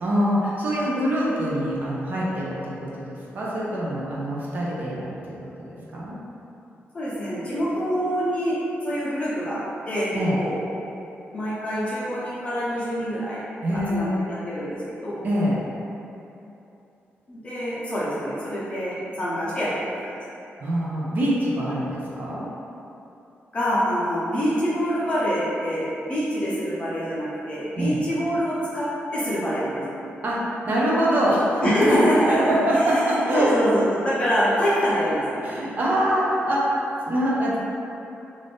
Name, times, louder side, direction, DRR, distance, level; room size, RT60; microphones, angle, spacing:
voice 1, 0.0-6.1 10.1-10.4 13.6-14.2 15.2-15.6 20.6-22.5 27.8-28.0 30.2-32.0 32.3-33.5 35.4-36.7 37.1-37.6, equal, 40° right, -6 dB, 0.5 m, -24 dB
voice 2, 6.9-8.6 8.8-9.6 9.9-10.6 11.3-13.4 13.9-14.1 14.4-15.2 17.3-19.7 20.0-20.1 23.5-28.9 29.1-30.0 31.6-33.0 33.3-35.5, equal, 25° left, -9 dB, 0.7 m, -25 dB
2.5 x 2.5 x 3.4 m, 2.9 s
wide cardioid pair, 175°, 4 cm